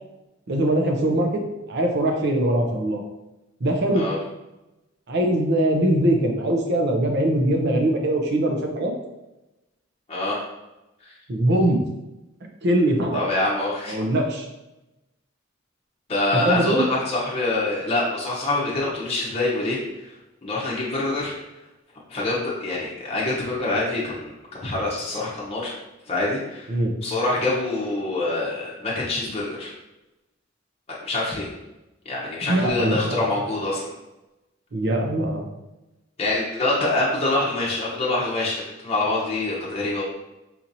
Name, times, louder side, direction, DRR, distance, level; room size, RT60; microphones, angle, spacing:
voice 1, 0.5-1.4 1.7-3.0 3.6-4.1 5.1-8.9 11.3-11.8 12.6-13.2 13.9-14.4 16.3-16.8 26.7-26.9 32.4-33.3 34.7-35.4, right 1 dB, 60° right, 2 dB, 0.6 m, -22 dB
voice 2, 13.1-14.0 16.1-20.1 20.4-21.3 22.1-25.7 26.1-26.7 27.0-29.7 31.0-31.5 32.0-33.9 36.2-40.0, left 2 dB, 30° left, -6 dB, 0.7 m, -25 dB
4.2 x 2.8 x 2.6 m, 0.98 s
head